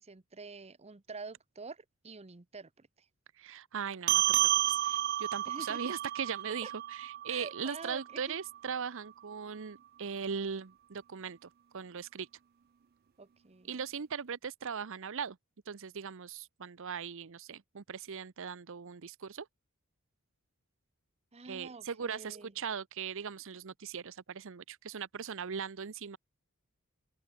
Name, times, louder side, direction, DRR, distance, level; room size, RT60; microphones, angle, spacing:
voice 1, 0.0-2.9 5.5-5.9 6.6-6.7 7.3-8.4 13.2-13.8 21.3-22.5, right 4 dB, 30° right, 0.9 m, -47 dB
voice 2, 3.4-12.3 13.7-15.4 15.7-19.5 21.4-26.2, right 6 dB, 65° right, 0.7 m, -39 dB
sound 1, 4.1-8.9, right 13 dB, 45° right, 0.4 m, -31 dB
open air
head